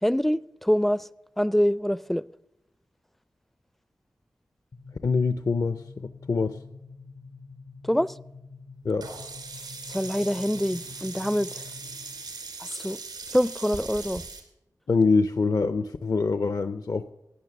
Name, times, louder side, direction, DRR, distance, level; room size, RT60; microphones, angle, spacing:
voice 1, 0.0-1.1 1.4-2.2 7.8-8.1 9.9-11.6 12.6-13.0 13.3-14.2, equal, 5° left, 0.4 m, -25 dB
sound 1, 4.7-12.3, left 4 dB, 75° left, 1.8 m, -47 dB
voice 2, 5.0-6.6 8.8-9.1 14.9-17.1, left 4 dB, 60° left, 0.6 m, -25 dB
Sink (filling or washing), 9.0-14.4, right 4 dB, 85° right, 3.1 m, -39 dB
15.5 x 9.3 x 6.8 m
cardioid pair, 55°, 7 cm